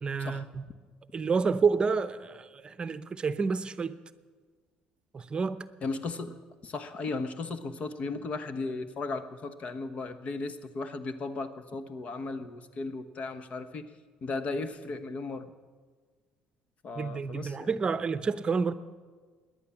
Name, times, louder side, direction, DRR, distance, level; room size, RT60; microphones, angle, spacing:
voice 1, 0.0-0.6 1.1-4.0 5.1-5.7 17.0-18.7, right 5 dB, 30° right, 0.7 m, -29 dB
voice 2, 5.8-13.9 14.2-15.5 16.8-17.7, left 3 dB, 50° left, 1.2 m, -36 dB
18.0 x 10.5 x 7.2 m
supercardioid pair, 80°, 3 cm